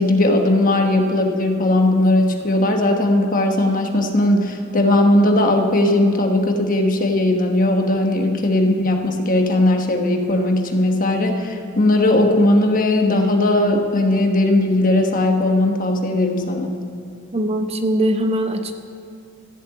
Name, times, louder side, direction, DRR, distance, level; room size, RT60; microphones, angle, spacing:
voice 1, 0.0-16.8, left 1 dB, 45° left, 3 dB, 1.3 m, -18 dB
voice 2, 17.3-18.7, right 1 dB, 30° right, 5 dB, 0.8 m, -21 dB
14.0 x 7.6 x 8.3 m, 2.3 s
head